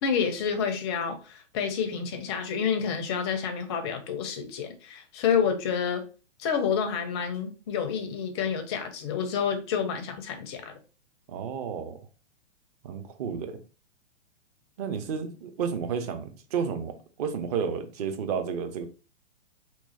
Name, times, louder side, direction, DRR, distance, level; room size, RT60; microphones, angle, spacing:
voice 1, 0.0-6.0 6.4-10.7, left 7 dB, 20° left, 0.4 m, -29 dB
voice 2, 11.3-12.0 12.8-13.6 14.8-18.9, right 6 dB, 35° right, 0.6 m, -31 dB
3.0 x 2.3 x 4.0 m
figure-of-eight pair, 120°, 37 cm